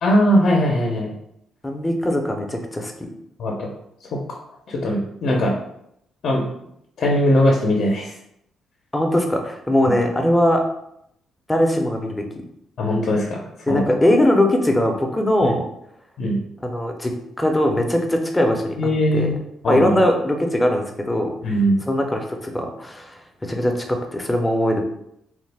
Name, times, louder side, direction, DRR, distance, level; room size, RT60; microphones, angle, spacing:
voice 1, 0.0-1.1 3.4-3.7 4.1-4.4 4.7-5.5 6.2-6.4 7.0-8.1 12.8-13.9 15.4-15.5 16.2-16.4 18.8-19.3 19.6-20.0 21.4-21.8, equal, 60° left, -1 dB, 0.5 m, -20 dB
voice 2, 1.6-3.1 8.9-10.6 11.5-12.3 13.7-15.7 16.6-18.8 19.1-19.3 19.7-21.3 21.9-24.8, left 1 dB, 10° left, 3 dB, 0.5 m, -20 dB
3.1 x 2.1 x 3.3 m, 0.76 s
cardioid pair, 90°, 0 cm